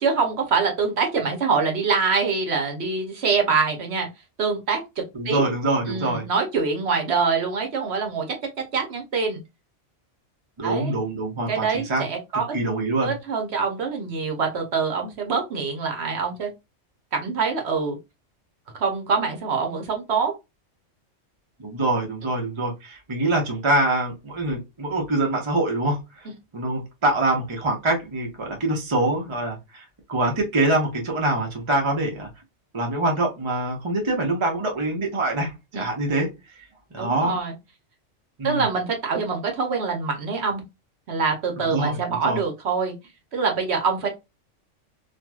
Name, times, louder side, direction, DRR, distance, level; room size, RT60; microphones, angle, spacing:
voice 1, 0.0-4.1 4.4-4.8 5.2-5.4 5.9-8.3 8.7-9.4 10.6-10.9 11.5-12.5 13.0-16.5 17.1-18.0 18.8-20.3 35.7-35.8 37.0-37.5 38.4-40.6 41.1-42.9 43.3-44.1, right 5 dB, 65° right, 1.0 m, -24 dB
voice 2, 5.1-6.3 10.6-12.0 12.5-13.1 21.6-26.3 26.5-32.3 32.7-36.3 36.9-37.4 38.4-38.7 41.7-42.4, right 2 dB, 30° right, 0.8 m, -24 dB
3.0 x 2.6 x 2.2 m
omnidirectional pair, 1.2 m